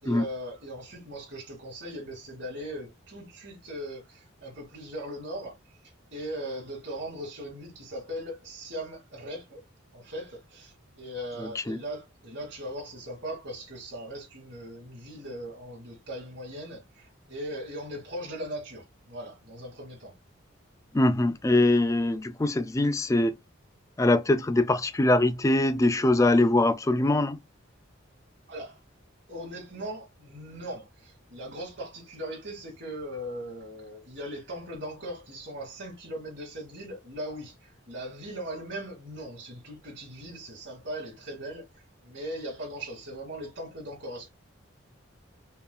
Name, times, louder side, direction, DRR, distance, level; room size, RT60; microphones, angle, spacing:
voice 1, 0.0-5.6 6.1-9.6 9.9-20.1 28.5-28.8 29.3-44.3, right 1 dB, 60° right, 2.4 m, -39 dB
voice 2, 11.4-11.8 20.9-23.4 24.0-27.4, left 2 dB, 15° left, 0.3 m, -23 dB
5.5 x 2.3 x 2.3 m
head